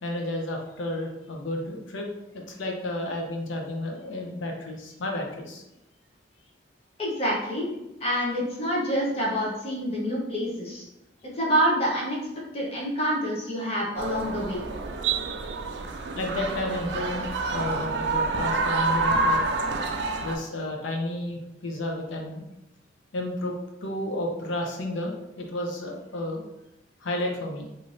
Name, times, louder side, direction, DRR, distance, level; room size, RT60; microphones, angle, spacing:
voice 1, 0.0-2.1 2.5-5.6 16.1-19.4 20.2-22.4 23.1-23.5 23.8-26.4 27.0-27.7, left 1 dB, 85° left, 1 dB, 0.6 m, -32 dB
voice 2, 7.0-7.7 8.0-10.8 11.4-12.2 12.5-14.6, equal, 30° left, -4 dB, 0.7 m, -27 dB
sound 1, 14.0-20.4, right 3 dB, 65° right, 0.3 m, -27 dB
3.1 x 2.6 x 2.5 m, 0.92 s
head